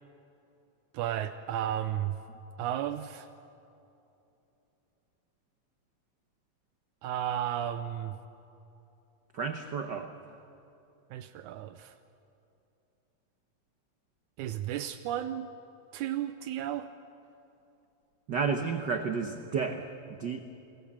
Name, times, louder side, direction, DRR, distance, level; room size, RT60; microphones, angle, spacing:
voice 1, 0.9-2.2 2.6-3.3 7.0-8.2 11.1-11.9 14.4-15.5 15.9-16.9, right 11 dB, 80° right, 9 dB, 2.2 m, -33 dB
voice 2, 9.3-10.1 18.3-20.4, right 5 dB, 65° right, 6 dB, 1.1 m, -32 dB
29.0 x 21.5 x 7.4 m, 2.8 s
omnidirectional pair, 3.5 m